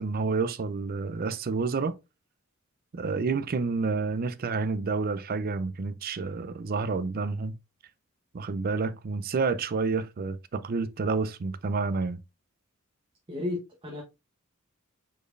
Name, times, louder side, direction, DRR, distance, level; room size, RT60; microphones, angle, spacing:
voice 1, 0.0-2.0 2.9-7.6 8.3-12.2, right 4 dB, 45° right, 0.4 m, -29 dB
voice 2, 13.3-14.0, left 2 dB, 25° right, 1.0 m, -33 dB
5.1 x 4.2 x 2.5 m
head